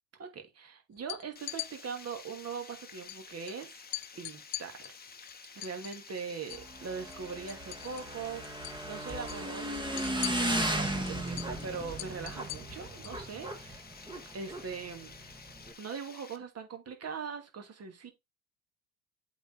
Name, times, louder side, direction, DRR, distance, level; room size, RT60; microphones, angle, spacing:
voice 1, 0.2-3.8 4.2-4.9 5.6-13.8 14.3-15.1 15.8-18.1, right 5 dB, 30° right, 2.6 m, -41 dB
sound 1, 1.0-1.7 3.1-3.2 3.5-3.6 3.9-6.7 7.0-8.2 8.4-8.8 9.1-13.2, left 21 dB, 55° left, 0.7 m, -42 dB
Water, 1.4-16.4, left 5 dB, 20° left, 1.4 m, -51 dB
Motorcycle / Engine, 6.5-15.7, right 1 dB, 10° right, 1.8 m, -36 dB
7.8 x 4.4 x 4.4 m
hypercardioid pair, 70°, 46 cm